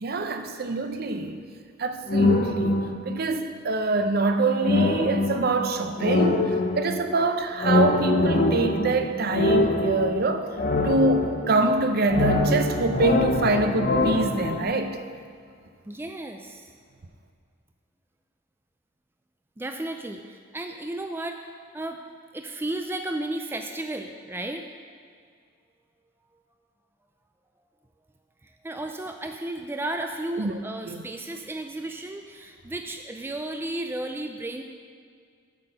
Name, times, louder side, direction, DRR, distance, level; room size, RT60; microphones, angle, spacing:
voice 1, 0.0-1.4 1.8-6.4 6.8-10.5 10.8-15.0 30.4-30.5 30.9-31.0, right 2 dB, 50° right, 7 dB, 0.6 m, -25 dB
sound 1, 2.1-3.3 4.6-7.1 7.6-11.7 12.1-14.6, left 2 dB, 45° left, 0.6 m, -24 dB
voice 2, 15.9-16.7 19.6-22.0 22.3-24.6 28.4-34.6, right 1 dB, 10° right, 5 dB, 0.4 m, -34 dB
8.6 x 5.9 x 6.5 m, 2.1 s
head